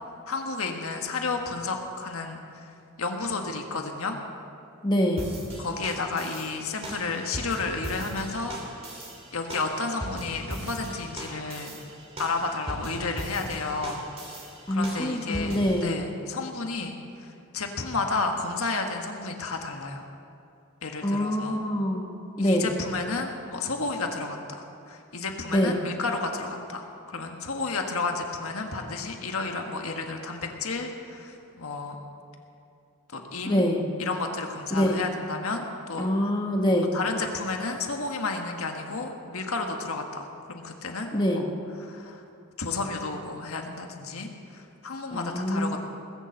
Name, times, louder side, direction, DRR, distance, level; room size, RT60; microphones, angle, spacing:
voice 1, 0.3-2.7 3.0-4.2 5.6-8.6 9.3-11.8 12.2-14.0 14.7-20.1 20.8-21.6 22.4-32.0 33.1-33.7 34.0-36.1 36.9-41.4 41.8-42.2 42.6-45.8, left 3 dB, 75° left, 3 dB, 1.5 m, -32 dB
voice 2, 4.8-5.3 14.7-15.9 21.0-22.1 22.4-22.7 25.5-25.8 33.5-33.8 34.7-35.0 36.0-36.9 41.1-41.5 45.1-45.8, equal, 20° left, 1 dB, 1.0 m, -25 dB
sound 1, 5.2-15.8, right 1 dB, 25° right, 2.4 m, -39 dB
20.5 x 7.1 x 7.8 m, 2.6 s
head